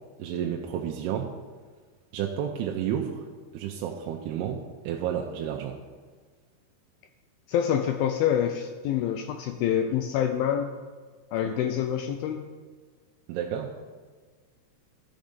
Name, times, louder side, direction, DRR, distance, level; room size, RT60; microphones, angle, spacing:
voice 1, 0.2-1.3 2.1-3.2 3.5-5.8 13.3-13.7, right 9 dB, 85° right, 1 dB, 2.6 m, -31 dB
voice 2, 7.5-10.8 11.3-12.6, left 9 dB, 80° left, 6 dB, 2.2 m, -26 dB
13.0 x 5.3 x 5.2 m, 1.5 s
omnidirectional pair, 4.6 m